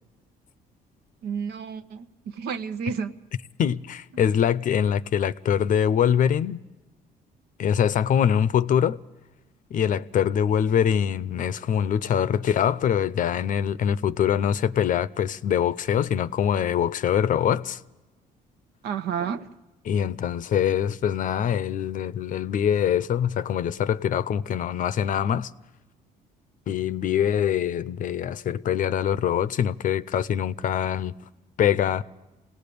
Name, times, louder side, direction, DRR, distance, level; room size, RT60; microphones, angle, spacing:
voice 1, 1.2-2.0 2.4-3.1 18.8-19.5, right 7 dB, 70° right, 1.0 m, -30 dB
voice 2, 3.6-6.6 7.6-9.0 9.7-17.8 19.8-25.5 26.7-31.1 31.6-32.0, left 9 dB, 50° left, 0.6 m, -24 dB
26.5 x 18.0 x 6.9 m
cardioid pair, 110°, 17 cm